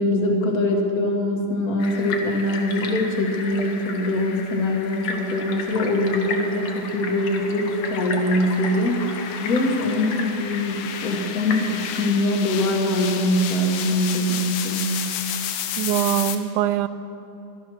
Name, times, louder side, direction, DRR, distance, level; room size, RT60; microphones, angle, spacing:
voice 1, 0.0-9.1 9.4-15.0, left 1 dB, 40° left, 1 dB, 1.4 m, -23 dB
Hydrophone Venice Gondolas, 1.8-12.1, left 4 dB, 60° left, 1.5 m, -34 dB
sound 1, 4.3-16.4, left 9 dB, 85° left, 2.3 m, -33 dB
voice 2, 15.8-16.9, right 12 dB, 85° right, 14 dB, 2.0 m, -22 dB
13.0 x 12.5 x 6.3 m, 2.9 s
omnidirectional pair, 3.5 m